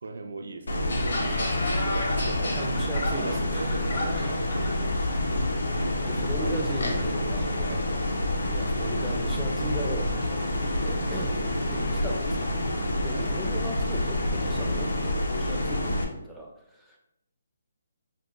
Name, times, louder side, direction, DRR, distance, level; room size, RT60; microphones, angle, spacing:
voice 1, 0.0-2.6 3.1-3.9 5.3-5.5 6.4-6.6 7.6-7.9 13.1-13.3, right 3 dB, 75° right, 6 dB, 0.4 m, -38 dB
sound 1, 0.7-16.0, left 1 dB, 90° left, 0.7 m, -28 dB
sound 2, 0.9-7.1, left 2 dB, 70° left, 1.0 m, -35 dB
voice 2, 2.5-4.3 6.0-8.0 8.5-12.6 13.0-17.0, right 2 dB, ahead, -4 dB, 0.3 m, -37 dB
5.0 x 2.0 x 3.0 m, 0.81 s
hypercardioid pair, 170°, 0 cm